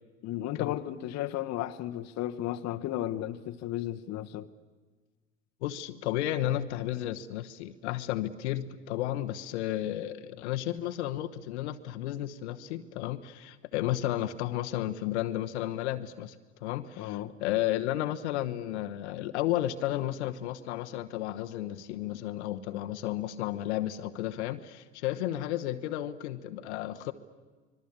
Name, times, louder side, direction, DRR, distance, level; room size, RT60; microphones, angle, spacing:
voice 1, 0.2-4.5 17.0-17.3, left 13 dB, 50° left, 1.1 m, -34 dB
voice 2, 5.6-16.3 16.6-27.1, left 13 dB, 70° left, 1.1 m, -33 dB
25.5 x 21.5 x 8.7 m
hypercardioid pair, 75°, 35 cm